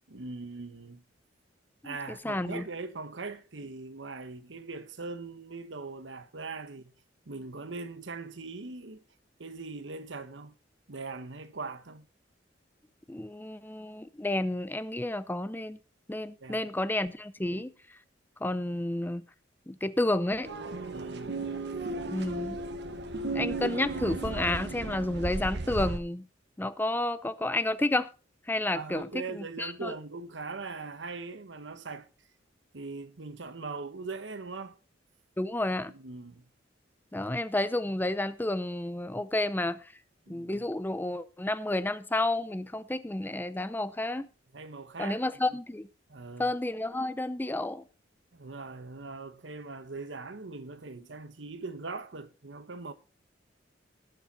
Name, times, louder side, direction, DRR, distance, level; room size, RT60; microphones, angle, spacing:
voice 1, 0.1-1.0 1.8-6.9 7.2-9.0 9.4-10.6 10.9-12.1 16.4-16.7 17.5-17.6 20.9-21.5 28.7-32.1 32.7-34.8 35.9-36.5 40.3-40.6 44.5-45.2 45.5-45.6 46.1-46.5 48.3-52.9, right 3 dB, 80° right, 1.1 m, -41 dB
voice 2, 2.2-2.6 13.1-15.8 16.1-17.7 18.4-19.2 19.7-20.5 22.1-22.6 23.3-26.3 26.6-28.1 28.5-29.1 29.3-29.9 35.4-35.9 37.1-39.8 40.3-44.3 45.0-45.9 46.4-47.8, left 1 dB, 10° left, 0.5 m, -31 dB
sound 1, 20.4-26.0, right 2 dB, 65° right, 1.2 m, -35 dB
17.5 x 7.1 x 4.1 m
head